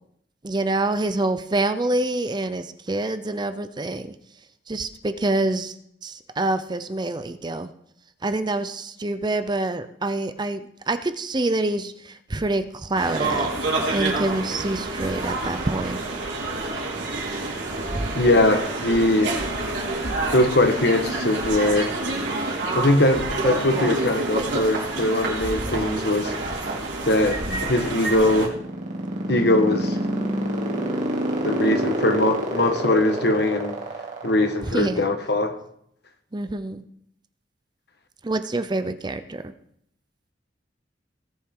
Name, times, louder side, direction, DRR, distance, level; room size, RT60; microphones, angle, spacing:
voice 1, 0.4-4.1 4.7-5.7 6.0-7.7 8.2-13.5 13.9-16.0 27.2-27.7 34.7-35.1 36.3-36.8 38.2-39.4, right 2 dB, 25° right, 11 dB, 0.6 m, -26 dB
sound 1, 12.9-28.5, right 2 dB, 90° right, 4.1 m, -28 dB
voice 2, 18.2-19.4 20.3-21.9 22.7-26.3 27.0-28.6 29.3-30.0 31.4-33.7 34.2-35.5, left 1 dB, 65° left, 7 dB, 1.3 m, -21 dB
sound 2, 28.5-34.8, right 1 dB, 45° right, 2.5 m, -26 dB
19.0 x 7.3 x 3.8 m, 0.71 s
head